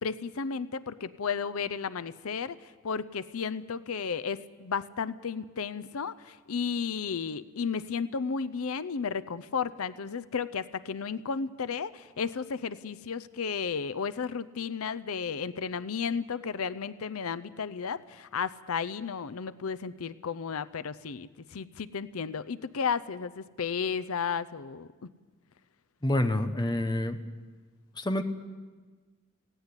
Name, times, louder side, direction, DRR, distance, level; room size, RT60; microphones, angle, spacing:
voice 1, 0.0-24.9, left 6 dB, 85° left, 16 dB, 0.6 m, -33 dB
voice 2, 26.0-27.2 28.0-28.2, left 1 dB, 20° left, 8 dB, 1.0 m, -27 dB
18.0 x 17.0 x 9.8 m, 1.4 s
head